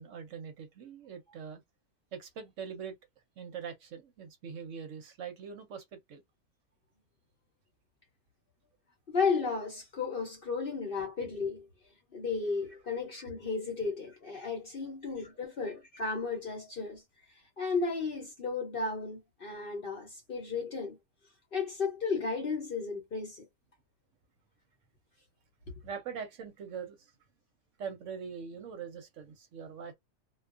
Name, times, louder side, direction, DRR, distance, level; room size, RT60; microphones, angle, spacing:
voice 1, 0.0-1.6 2.1-3.0 3.4-6.2 25.8-27.1 27.8-29.9, right 6 dB, 65° right, 0.9 m, -42 dB
voice 2, 9.1-11.7 12.1-17.0 17.6-21.0 21.5-23.5, left 4 dB, 50° left, 0.8 m, -34 dB
2.4 x 2.2 x 2.4 m
omnidirectional pair, 1.5 m